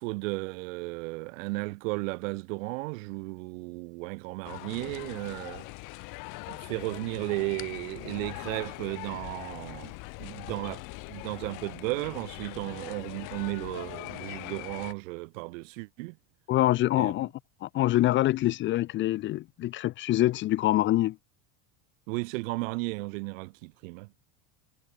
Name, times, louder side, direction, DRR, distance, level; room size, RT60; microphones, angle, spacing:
voice 1, 0.0-5.6 6.5-10.8 11.1-16.2 16.9-17.1 22.1-24.1, right 25 dB, 70° right, 3.3 m, -34 dB
sound 1, 4.4-14.9, left 27 dB, 50° left, 5.3 m, -41 dB
voice 2, 16.5-17.3 17.6-21.2, left 15 dB, 30° left, 0.8 m, -25 dB
cardioid pair, 170°, 40 cm